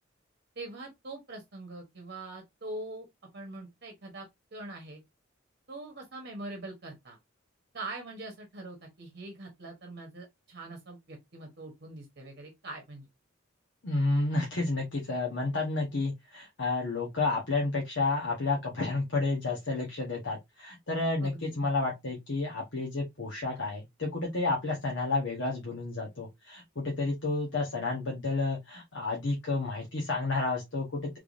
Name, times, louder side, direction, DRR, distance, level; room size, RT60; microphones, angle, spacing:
voice 1, 0.6-3.1 3.3-4.3 4.5-5.0 5.7-7.2 7.7-13.0 21.2-21.5, right 2 dB, 55° right, 1.0 m, -43 dB
voice 2, 13.8-31.2, left 3 dB, 60° left, 1.0 m, -31 dB
3.4 x 3.3 x 2.5 m
head